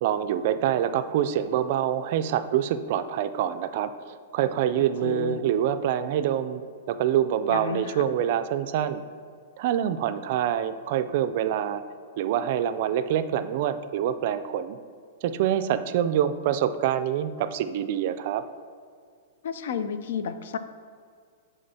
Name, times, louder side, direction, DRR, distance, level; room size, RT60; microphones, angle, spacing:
voice 1, 0.0-6.6 6.9-9.0 9.6-11.8 12.2-14.8 15.2-18.4, right 10 dB, 50° right, 10 dB, 0.3 m, -26 dB
voice 2, 5.0-5.5 7.5-8.1 19.4-20.6, left 7 dB, 65° left, 11 dB, 0.4 m, -31 dB
10.0 x 3.6 x 2.8 m, 2.1 s
hypercardioid pair, 155°, 0 cm